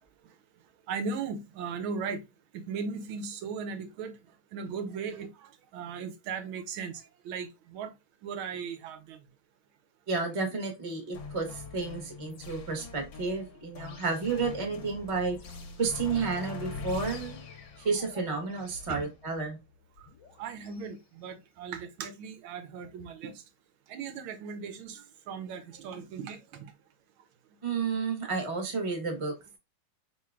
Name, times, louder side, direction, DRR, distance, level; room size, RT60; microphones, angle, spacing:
voice 1, 0.9-2.2 2.5-4.2 4.5-7.9 8.2-9.2 18.9-19.0 20.4-23.3 23.9-26.7, right 5 dB, 85° right, 1.6 m, -37 dB
voice 2, 10.1-15.4 15.8-17.4 17.8-19.6 27.6-29.3, right 4 dB, 20° right, 0.9 m, -31 dB
sound 1, 11.1-20.9, left 5 dB, 70° left, 1.5 m, -43 dB
4.3 x 3.8 x 2.3 m
omnidirectional pair, 2.2 m